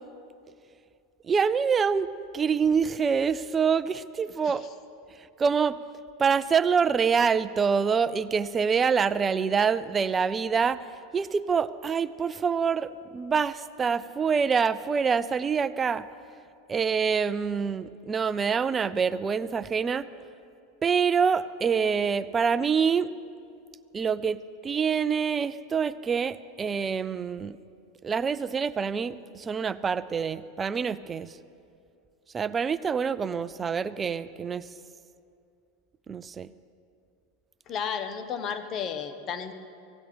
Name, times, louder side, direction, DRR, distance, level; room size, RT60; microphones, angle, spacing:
voice 1, 1.3-2.1 2.3-4.6 5.4-5.8 6.2-10.8 11.1-16.0 16.7-20.1 20.8-23.1 23.9-24.4 24.6-27.5 28.0-31.3 32.3-34.7 36.1-36.5, right 6 dB, 25° right, 16 dB, 0.5 m, -26 dB
voice 2, 37.7-39.5, left 7 dB, 40° left, 9 dB, 1.2 m, -33 dB
24.5 x 17.0 x 3.4 m, 2.5 s
hypercardioid pair, 90°, 0 cm